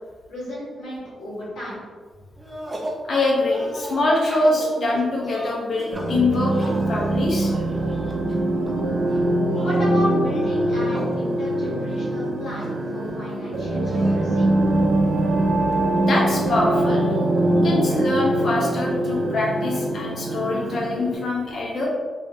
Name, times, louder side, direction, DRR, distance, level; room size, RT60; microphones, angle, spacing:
voice 1, 0.3-1.8 9.6-14.5, left 1 dB, 85° left, -8 dB, 1.3 m, -32 dB
sound 1, 2.4-3.1 3.5-8.7 9.0-9.9 10.6-11.2 11.5-11.6 11.9-12.8 13.8-14.1, right 1 dB, 15° right, 0.5 m, -37 dB
voice 2, 3.1-7.5 16.0-17.0 17.6-21.9, left 2 dB, 45° left, -3 dB, 0.8 m, -24 dB
sound 2, 5.9-21.2, right 1 dB, 60° right, 0.5 m, -23 dB
3.0 x 2.6 x 3.6 m, 1.5 s
wide cardioid pair, 145°, 0 cm